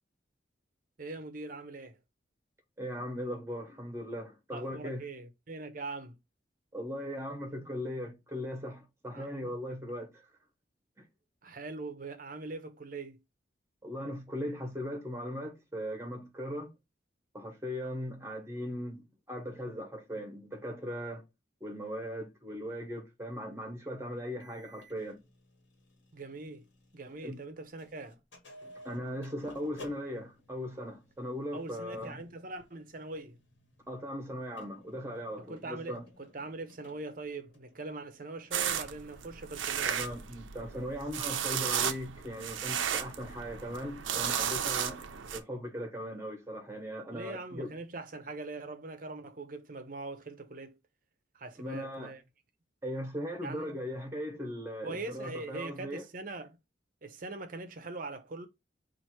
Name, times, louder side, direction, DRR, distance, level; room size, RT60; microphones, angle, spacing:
voice 1, 1.0-2.0 4.5-6.2 9.1-9.3 11.4-13.2 26.1-26.6 26.9-28.2 31.5-33.4 35.4-40.1 47.1-50.8 51.3-52.2 53.4-53.8 54.8-56.6 57.0-58.5, right 3 dB, 45° right, 0.7 m, -42 dB
voice 2, 2.8-5.1 6.7-10.2 11.0-11.1 13.8-16.7 17.3-21.2 21.6-25.2 27.2-27.4 28.8-32.2 33.9-36.0 39.9-45.0 45.3-47.7 51.6-52.1 52.8-56.0, equal, 15° right, 1.0 m, -38 dB
sound 1, 24.4-27.5 27.8-38.9, left 1 dB, 75° left, 1.4 m, -56 dB
sound 2, 38.5-45.4, right 8 dB, 85° right, 0.5 m, -34 dB
4.4 x 2.5 x 4.4 m
head